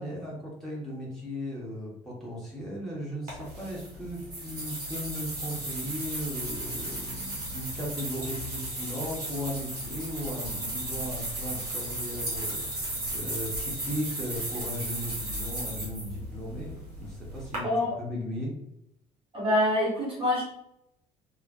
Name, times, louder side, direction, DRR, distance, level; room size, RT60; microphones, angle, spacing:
voice 1, 0.0-17.7 18.0-18.5, left 1 dB, ahead, -5 dB, 0.9 m, -37 dB
sound 1, 3.3-17.6, right 1 dB, 85° right, 0.7 m, -35 dB
voice 2, 17.6-18.0 19.3-20.4, left 1 dB, 25° right, -5 dB, 0.7 m, -25 dB
2.4 x 2.1 x 2.3 m, 0.80 s
figure-of-eight pair, 55°, 20 cm